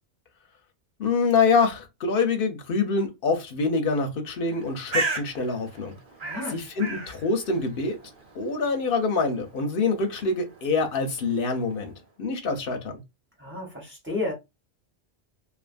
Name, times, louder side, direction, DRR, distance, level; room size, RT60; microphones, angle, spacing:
voice 1, 1.0-6.0 6.5-8.0 8.3-11.9 12.2-13.0, left 4 dB, 60° left, 0.9 m, -25 dB
Bird, 4.5-12.1, right 3 dB, 50° right, 0.9 m, -37 dB
voice 2, 6.2-6.6 13.4-14.3, left 2 dB, 10° right, 1.0 m, -32 dB
2.5 x 2.4 x 2.5 m
omnidirectional pair, 1.1 m